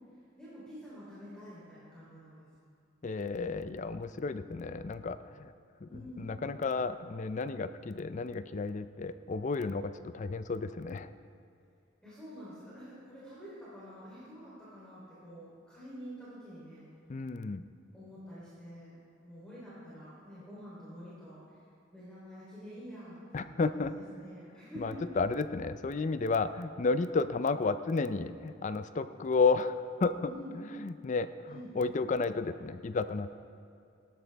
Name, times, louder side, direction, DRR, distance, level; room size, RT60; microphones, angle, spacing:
voice 1, 0.4-2.5 5.9-6.3 12.0-16.9 17.9-19.0 19.2-21.6 21.9-25.2 30.2-30.5 31.5-31.8, equal, 5° left, -10 dB, 3.4 m, -48 dB
voice 2, 3.0-5.5 5.8-5.9 6.2-11.1 17.1-17.6 23.3-23.9 24.8-29.8 30.0-30.1 30.8-33.3, left 4 dB, 40° left, 12 dB, 0.4 m, -32 dB
17.5 x 12.0 x 3.4 m, 2.4 s
head